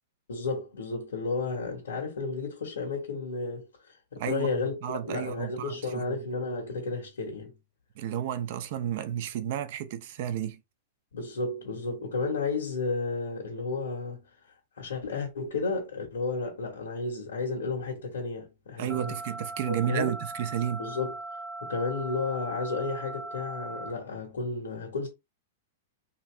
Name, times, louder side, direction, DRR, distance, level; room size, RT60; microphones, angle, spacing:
voice 1, 0.3-4.8 5.0-7.6 11.1-14.3 14.8-19.1 19.7-20.1 20.8-21.1 21.6-25.1, left 4 dB, 85° left, 1.3 m, -32 dB
voice 2, 4.2-6.1 8.0-10.6 18.8-20.8, right 10 dB, 60° right, 0.6 m, -32 dB
sound 1, 18.9-23.9, right 2 dB, 15° right, 0.8 m, -39 dB
2.8 x 2.8 x 3.2 m
hypercardioid pair, 130°, 0 cm